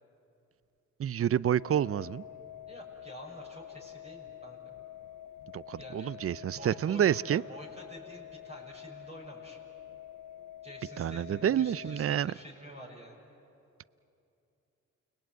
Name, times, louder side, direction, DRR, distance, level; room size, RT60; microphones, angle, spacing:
voice 1, 1.0-2.2 5.5-7.4 11.0-12.3, right 10 dB, 45° right, 21 dB, 0.5 m, -28 dB
sound 1, 1.6-12.0, left 12 dB, 80° left, 0.8 m, -48 dB
voice 2, 2.7-4.7 5.8-9.6 10.6-13.2, right 1 dB, 20° right, -3 dB, 6.6 m, -48 dB
29.5 x 20.5 x 9.2 m, 2.7 s
supercardioid pair, 45°, 32 cm